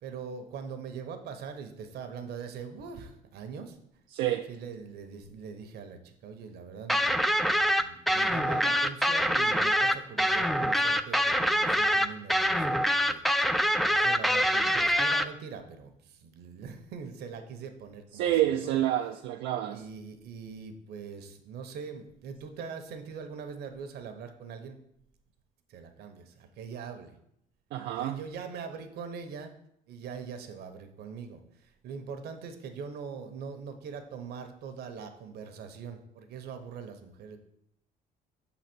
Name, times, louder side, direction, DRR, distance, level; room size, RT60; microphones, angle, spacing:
voice 1, 0.0-3.8 4.5-13.2 13.5-18.7 19.7-24.8 25.7-27.1 28.0-29.5 29.9-37.4, right 6 dB, 70° right, 7 dB, 1.0 m, -42 dB
voice 2, 4.1-4.5 18.1-19.8 27.7-28.2, right 12 dB, 85° right, 4 dB, 0.4 m, -28 dB
sound 1, 6.9-15.2, equal, ahead, 0.3 m, -25 dB
6.0 x 4.0 x 6.0 m, 0.74 s
cardioid pair, 110°, 17 cm